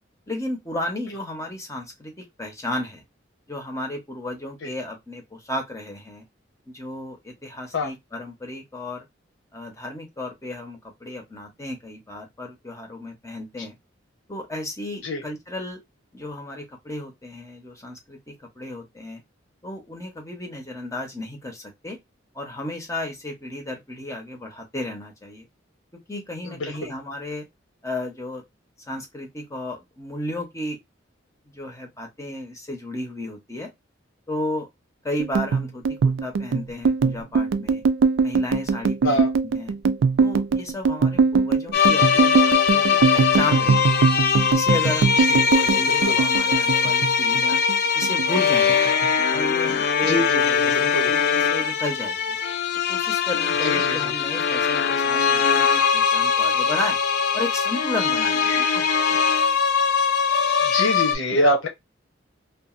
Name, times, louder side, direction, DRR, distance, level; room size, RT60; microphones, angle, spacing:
voice 1, 0.3-3.0 3.5-6.3 6.7-9.0 9.5-13.8 14.3-15.8 16.1-19.2 19.6-22.0 22.3-25.5 26.1-27.5 27.8-28.4 28.9-30.8 31.5-33.7 34.3-34.7 35.0-37.8 38.2-39.7 40.2-43.9 44.5-47.6 47.9-48.8 49.3-50.2 50.6-52.4 52.9-57.0 57.3-58.8 59.2-59.3, left 1 dB, 15° left, 0.8 m, -33 dB
voice 2, 26.5-26.9 39.0-39.3 45.3-46.1 50.1-51.1 53.6-54.1 58.5-58.6 60.6-61.7, left 1 dB, 75° left, 1.0 m, -25 dB
sound 1, 35.2-47.8 48.0-49.1 49.4-49.7 50.0-50.7, right 5 dB, 70° right, 0.3 m, -22 dB
sound 2, 41.7-61.1, left 6 dB, 55° left, 0.5 m, -21 dB
2.8 x 2.5 x 2.4 m
head